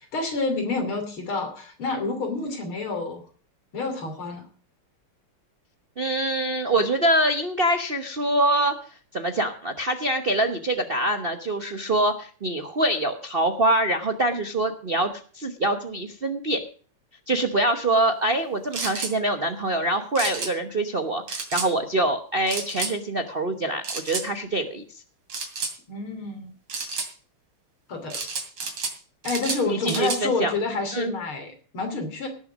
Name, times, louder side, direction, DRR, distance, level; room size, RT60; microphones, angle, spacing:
voice 1, 0.1-3.2 3.7-4.5 25.9-26.5 27.9-28.2 28.6-28.7 29.2-32.3, left 3 dB, 70° left, 5 dB, 3.8 m, -29 dB
voice 2, 6.0-8.7 9.1-16.6 17.3-24.8 29.7-30.5 30.9-31.2, right 1 dB, 40° right, 6 dB, 0.8 m, -24 dB
sound 1, 18.7-19.1 20.2-20.5 21.3-21.7 22.5-22.9 23.8-24.3 25.3-25.7 26.7-27.1 28.1-29.0 29.2-30.2, right 4 dB, 75° right, 3.4 m, -31 dB
17.5 x 7.1 x 6.1 m, 0.42 s
omnidirectional pair, 2.4 m